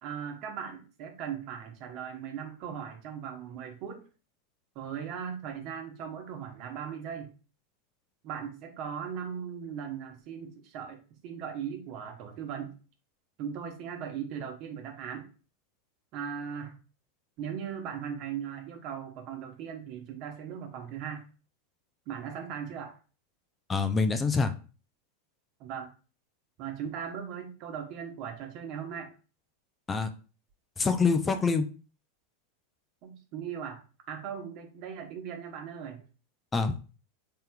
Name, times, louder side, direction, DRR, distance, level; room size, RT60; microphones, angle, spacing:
voice 1, 0.0-4.0 4.7-7.3 8.2-12.7 13.4-15.3 16.1-16.8 17.4-21.2 22.1-22.9 25.6-25.9 26.6-29.1 33.0-33.8 34.1-36.0, right 8 dB, 50° right, 4 dB, 0.9 m, -38 dB
voice 2, 23.7-24.5 29.9-30.1 30.8-31.6 36.5-36.9, left 4 dB, 20° left, 7 dB, 0.4 m, -26 dB
4.3 x 3.6 x 2.2 m, 0.36 s
hypercardioid pair, 100°, 0 cm